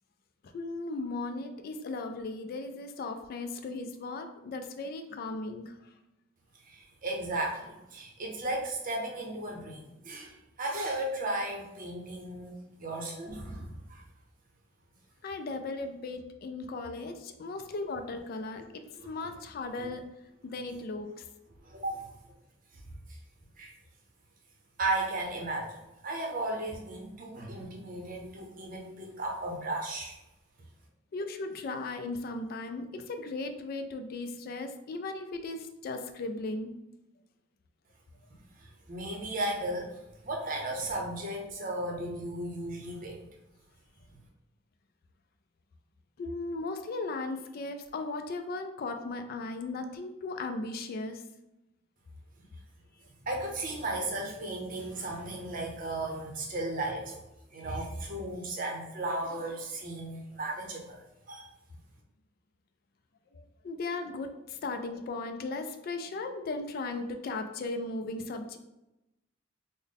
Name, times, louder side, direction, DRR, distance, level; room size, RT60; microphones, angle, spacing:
voice 1, 0.4-5.8 15.2-20.0 20.4-21.3 31.1-36.7 46.2-51.2 63.3-68.6, left 3 dB, 50° left, 7 dB, 0.3 m, -37 dB
voice 2, 6.7-14.0 19.0-19.4 19.8-19.9 21.6-22.1 22.7-22.8 23.1-23.2 23.6-23.7 24.8-30.2 38.6-40.0 40.2-43.3 53.2-57.2 57.5-61.0 61.3-61.5, right 2 dB, 45° right, 0 dB, 0.7 m, -35 dB
3.8 x 2.0 x 3.5 m, 0.93 s
head